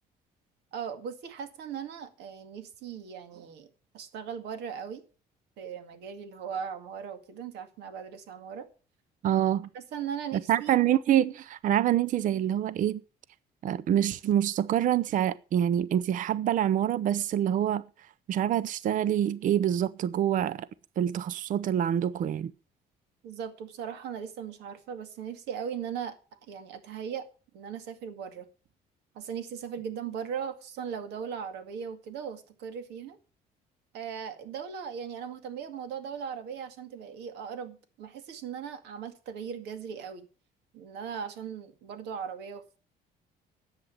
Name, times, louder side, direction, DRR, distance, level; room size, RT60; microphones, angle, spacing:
voice 1, 0.7-3.7 3.9-5.0 5.6-8.7 9.7-10.7 23.2-27.3 27.5-28.5 29.2-33.2 33.9-40.2 40.7-42.8, right 7 dB, 85° right, 2.1 m, -38 dB
voice 2, 9.2-9.7 10.5-13.0 13.6-17.8 18.3-20.7 21.0-22.5, right 10 dB, 50° right, 0.5 m, -26 dB
11.0 x 8.0 x 7.3 m
cardioid pair, 110°, 17 cm